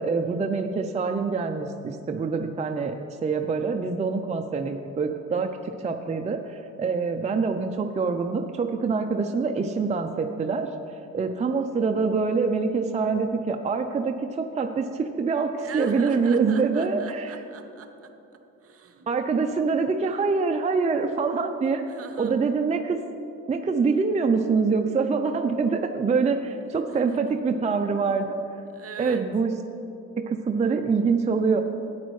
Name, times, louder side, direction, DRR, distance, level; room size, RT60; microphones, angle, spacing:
voice 1, 0.0-3.0 3.2-5.5 5.8-10.7 11.1-17.4 19.1-21.8 22.2-23.0 23.5-28.4 29.0-29.5 30.2-31.6, right 4 dB, 25° right, 5 dB, 0.5 m, -25 dB
voice 2, 15.6-19.1 21.9-22.4 26.9-27.2 28.7-29.3, right 7 dB, 50° right, 7 dB, 0.8 m, -42 dB
12.5 x 9.1 x 3.2 m, 2.8 s
cardioid pair, 90°, 30 cm